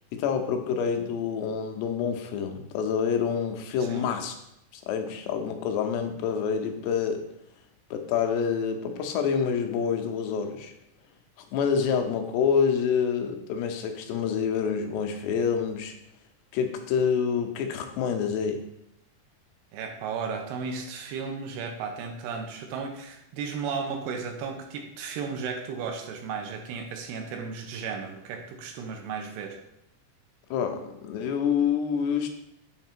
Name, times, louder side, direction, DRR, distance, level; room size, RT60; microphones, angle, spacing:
voice 1, 0.1-4.3 4.7-7.2 7.9-10.7 11.5-15.9 16.5-18.6 30.5-32.3, left 7 dB, 85° left, 5 dB, 2.8 m, -27 dB
voice 2, 19.7-29.6, right 5 dB, 80° right, 3 dB, 2.7 m, -34 dB
8.1 x 3.3 x 4.5 m, 0.80 s
omnidirectional pair, 4.7 m